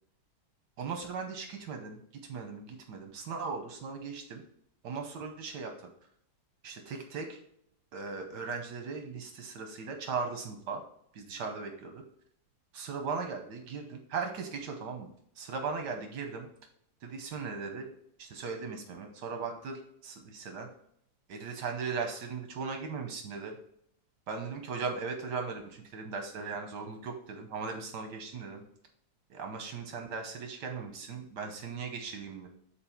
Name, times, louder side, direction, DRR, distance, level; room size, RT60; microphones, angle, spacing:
voice 1, 0.8-2.0 2.3-4.4 4.8-5.7 6.6-7.4 7.9-10.8 11.1-12.0 12.7-15.1 15.4-16.5 17.0-17.9 18.2-20.7 21.3-23.6 24.3-28.6 29.3-32.5, right 5 dB, 80° right, 4 dB, 1.5 m, -38 dB
7.3 x 4.3 x 4.4 m, 0.70 s
omnidirectional pair, 1.8 m